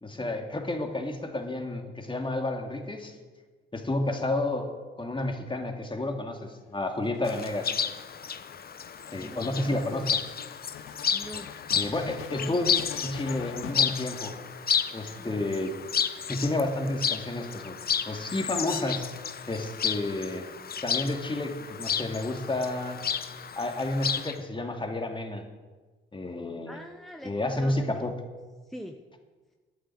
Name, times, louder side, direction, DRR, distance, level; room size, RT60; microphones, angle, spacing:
voice 1, 0.0-3.2 3.7-4.7 5.0-7.8 9.1-10.1 11.7-12.7 13.0-14.3 14.9-15.7 16.3-17.8 18.0-19.1 19.5-20.5 20.8-23.0 23.5-25.5 26.1-26.8 27.2-28.1, left 2 dB, 25° left, 4 dB, 2.6 m, -31 dB
sound 1, 6.9-14.9 15.7-16.5, left 9 dB, 75° left, 0.9 m, -44 dB
Chirp tweet, 7.2-24.3, left 7 dB, 45° left, 0.9 m, -32 dB
voice 2, 9.1-10.1 11.1-11.5 12.3-12.6 15.2-15.5 26.7-28.1 28.6-29.0, equal, ahead, 3 dB, 1.2 m, -43 dB
11.5 x 8.8 x 8.6 m, 1.3 s
supercardioid pair, 50°, 21 cm